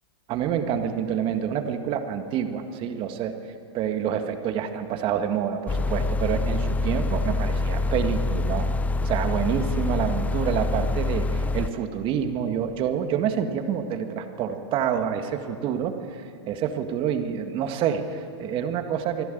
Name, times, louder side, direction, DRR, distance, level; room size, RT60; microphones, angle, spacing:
voice 1, 0.3-3.3 3.7-8.7 9.0-19.2, right 8 dB, 35° right, 7 dB, 1.8 m, -27 dB
sound 1, 5.7-11.7, left 2 dB, 10° left, 0.5 m, -25 dB
24.0 x 12.5 x 9.2 m, 2.5 s
hypercardioid pair, 120°, 15 cm